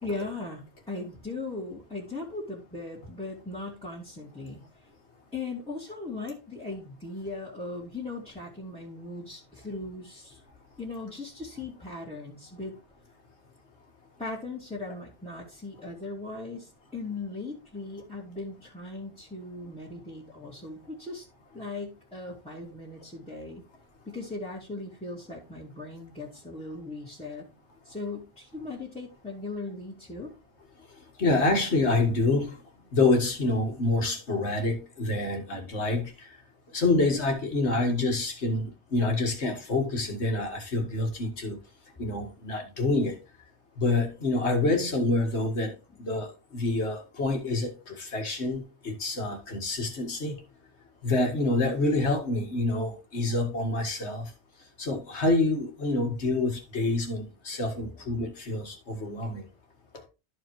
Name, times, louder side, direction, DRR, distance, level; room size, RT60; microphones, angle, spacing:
voice 1, 0.0-4.6 5.3-10.4 10.8-12.7 14.2-21.3 21.5-23.6 24.1-27.5 27.8-30.3 57.8-58.0, left 3 dB, 5° left, 2.1 m, -38 dB
voice 2, 31.2-32.6 32.9-36.3 36.7-41.6 42.0-43.2 43.8-50.4 51.0-54.3 54.8-59.4, left 2 dB, 80° left, 2.1 m, -27 dB
13.0 x 5.0 x 3.1 m
omnidirectional pair, 1.1 m